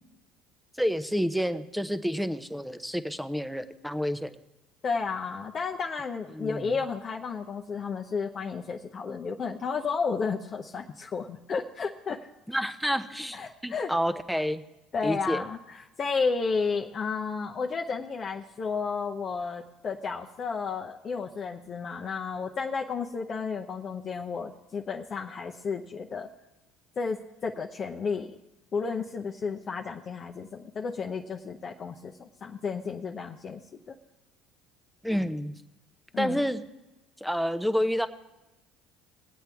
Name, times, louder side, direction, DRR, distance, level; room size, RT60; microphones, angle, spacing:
voice 1, 0.8-4.3 6.3-6.8 12.5-14.6 15.0-15.4 35.0-35.5 36.2-36.6 37.2-38.1, equal, ahead, 11 dB, 0.8 m, -29 dB
voice 2, 4.8-12.3 13.3-13.9 14.9-26.3 27.0-28.3 28.7-33.6 33.9-34.0 36.1-36.4, left 5 dB, 40° left, 1 dB, 0.7 m, -32 dB
20.0 x 8.2 x 3.5 m, 1.0 s
supercardioid pair, 95°, 0 cm